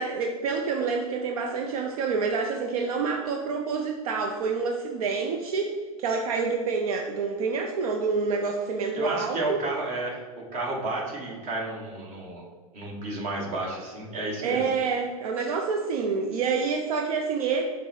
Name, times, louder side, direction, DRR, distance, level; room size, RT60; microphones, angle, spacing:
voice 1, 0.0-5.7 6.0-9.6 14.4-17.6, right 5 dB, 70° right, 2 dB, 0.5 m, -27 dB
voice 2, 8.9-12.4 12.7-14.6, right 2 dB, 35° right, -1 dB, 1.2 m, -32 dB
5.3 x 2.0 x 4.1 m, 1.5 s
hypercardioid pair, 115°, 19 cm